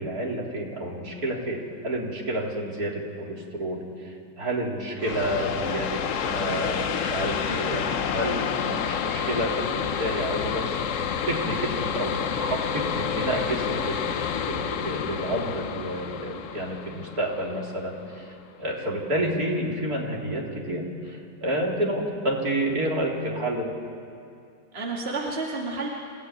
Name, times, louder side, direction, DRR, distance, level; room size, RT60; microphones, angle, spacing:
voice 1, 0.0-7.8 8.1-23.8, right 1 dB, 55° right, -1 dB, 4.0 m, -30 dB
sound 1, 5.0-18.4, left 7 dB, 55° left, 1.0 m, -29 dB
voice 2, 6.2-8.1 8.6-8.9 24.7-25.9, right 3 dB, 35° right, -2 dB, 2.6 m, -34 dB
28.0 x 17.5 x 9.6 m, 2.5 s
omnidirectional pair, 1.9 m